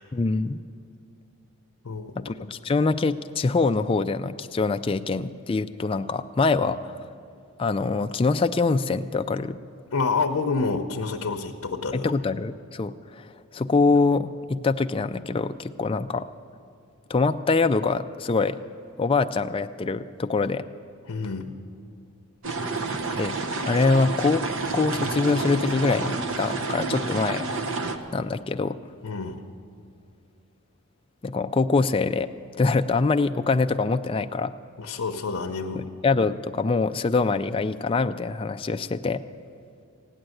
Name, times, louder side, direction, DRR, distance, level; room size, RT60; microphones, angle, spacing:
voice 1, 0.1-0.6 2.2-7.0 7.6-9.6 11.9-16.3 17.1-18.6 19.0-20.7 23.2-23.3 23.7-24.5 24.7-27.4 28.1-28.8 31.2-32.3 32.6-34.5 35.7-39.2, left 3 dB, 25° left, 8 dB, 0.3 m, -24 dB
voice 2, 9.9-12.1 21.1-21.5 29.0-29.4 34.8-35.8, left 4 dB, 70° left, 3 dB, 0.7 m, -28 dB
sound 1, 22.4-28.0, right 3 dB, 60° right, 0.9 m, -29 dB
16.0 x 10.0 x 7.8 m, 2.4 s
head